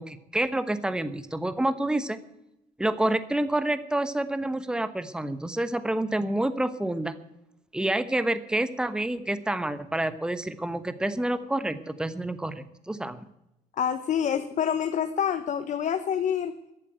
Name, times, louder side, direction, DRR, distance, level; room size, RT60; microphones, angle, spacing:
voice 1, 0.0-2.2 2.8-7.1 7.7-13.3, right 1 dB, 5° right, 12 dB, 1.0 m, -28 dB
voice 2, 13.8-16.5, left 8 dB, 45° left, 9 dB, 1.0 m, -27 dB
14.5 x 8.4 x 9.2 m, 0.88 s
cardioid pair, 110°, 17 cm